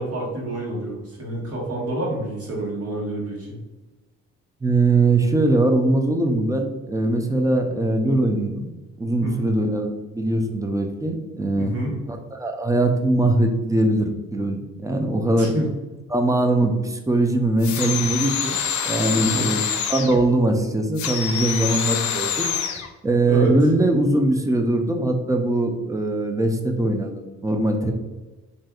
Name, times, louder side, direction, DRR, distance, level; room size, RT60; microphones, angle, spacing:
voice 1, 0.0-3.6 9.2-9.4 11.6-12.0 15.4-15.7 19.2-19.5 23.3-23.6, right 1 dB, 50° right, -4 dB, 1.3 m, -28 dB
voice 2, 4.6-8.7 9.0-11.7 12.1-15.5 16.1-18.6 18.9-19.6 19.9-22.5 23.0-27.9, right 2 dB, 10° right, 4 dB, 0.3 m, -21 dB
sound 1, 17.6-20.2 20.9-22.9, left 8 dB, 70° left, 0.5 m, -26 dB
3.3 x 2.6 x 2.3 m, 1.2 s
cardioid pair, 90°, 30 cm